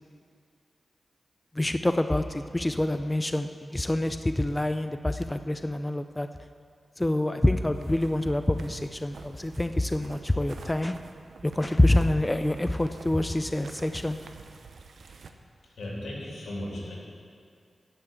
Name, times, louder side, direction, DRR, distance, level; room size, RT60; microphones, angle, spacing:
voice 1, 1.5-6.3 7.0-11.0 11.4-14.2, left 1 dB, 15° left, 8 dB, 0.4 m, -26 dB
sound 1, 7.7-15.3, right 4 dB, 80° right, 0.7 m, -48 dB
voice 2, 15.6-16.9, left 1 dB, 85° left, -4 dB, 2.9 m, -36 dB
11.0 x 6.0 x 7.9 m, 2.4 s
cardioid pair, 75°, 0 cm